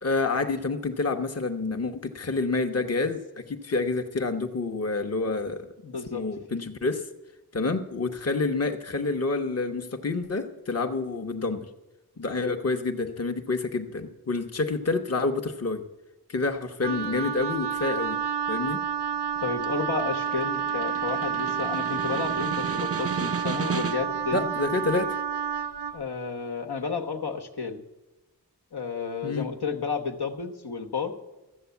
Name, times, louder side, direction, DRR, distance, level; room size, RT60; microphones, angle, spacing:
voice 1, 0.0-5.7 6.1-7.1 7.5-11.7 12.2-15.8 16.3-18.2 18.5-18.8 24.3-25.2 29.2-29.5, left 3 dB, 40° left, 4 dB, 1.0 m, -28 dB
voice 2, 5.8-6.3 19.4-24.5 25.9-27.8 28.7-31.1, left 5 dB, 75° left, 2 dB, 1.2 m, -32 dB
Wind instrument woodwind instrument, 16.8-26.0, right 7 dB, 80° right, 0.5 m, -30 dB
Snare drum, 19.4-24.3, right 5 dB, 35° right, 0.6 m, -34 dB
13.5 x 7.8 x 8.2 m, 1.1 s
wide cardioid pair, 45°, 39 cm